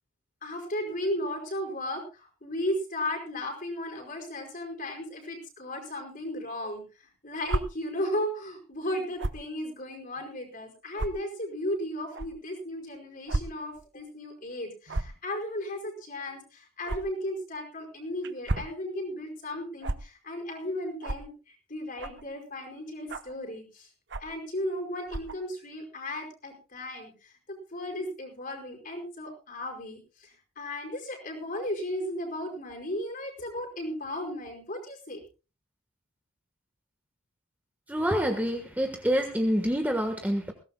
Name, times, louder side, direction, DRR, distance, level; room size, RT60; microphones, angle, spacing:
voice 1, 0.4-6.8 7.2-23.9 24.2-35.2, left 1 dB, 40° left, 2 dB, 5.0 m, -35 dB
sound 1, 7.4-7.6 9.2-9.4 10.2-10.3 10.9-11.1 12.1-12.3 13.3-13.4 13.8-13.9 14.9-15.2 16.8-17.0 18.2-18.7 19.8-20.0 21.0-21.2 22.0-22.3 23.1-23.3 24.1-24.4 25.1-25.4, right 2 dB, 55° right, 0.9 m, -31 dB
voice 2, 37.9-40.5, equal, 10° right, 4 dB, 1.3 m, -27 dB
20.5 x 17.0 x 2.2 m, 0.32 s
head